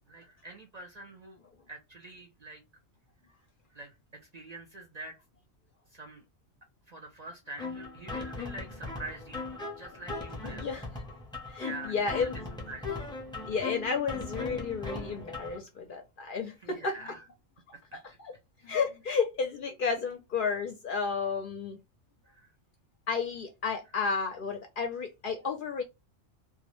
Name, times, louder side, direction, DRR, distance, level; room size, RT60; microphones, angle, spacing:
voice 1, 0.1-1.4 1.7-2.6 3.7-4.0 4.2-5.2 5.9-6.2 6.9-10.7 11.6-12.4 12.7-13.0 16.6-17.2 17.9-18.0 18.6-18.7 22.3-22.5, right 2 dB, 50° right, 0.5 m, -45 dB
sound 1, 7.6-15.6, left 3 dB, 5° left, 0.5 m, -39 dB
voice 2, 10.4-11.2 11.5-12.4 13.5-17.1 18.2-18.3 18.6-21.8 23.1-25.8, left 5 dB, 60° left, 0.6 m, -32 dB
2.3 x 2.0 x 3.0 m
omnidirectional pair, 1.2 m